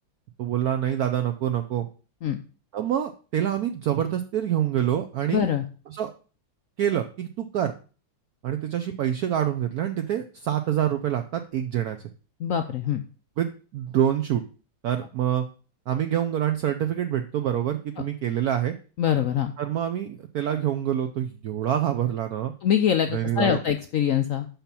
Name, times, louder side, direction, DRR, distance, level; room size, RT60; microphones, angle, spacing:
voice 1, 0.4-1.9 2.7-5.5 5.9-6.1 6.8-7.7 8.4-12.0 13.4-14.4 14.8-15.5 15.9-18.7 19.6-22.5 23.1-23.6, right 10 dB, 65° right, 7 dB, 0.9 m, -26 dB
voice 2, 5.3-5.7 12.4-13.0 19.0-19.5 22.6-24.5, left 9 dB, 80° left, 7 dB, 0.7 m, -24 dB
5.8 x 5.7 x 6.9 m, 0.38 s
omnidirectional pair, 2.1 m